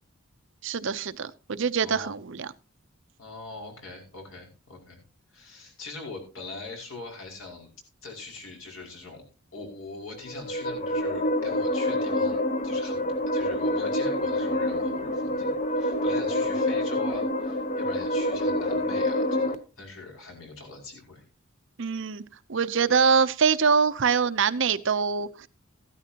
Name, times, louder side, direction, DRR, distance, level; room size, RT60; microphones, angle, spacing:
voice 1, 0.6-2.5 21.8-22.2 22.5-25.5, right 5 dB, 60° right, 0.6 m, -24 dB
voice 2, 1.8-2.1 3.2-5.0 5.3-7.7 8.0-9.2 9.5-21.2, left 3 dB, 75° left, 5.5 m, -42 dB
sound 1, 10.1-19.5, left 1 dB, 35° left, 0.9 m, -27 dB
15.0 x 12.5 x 2.9 m
head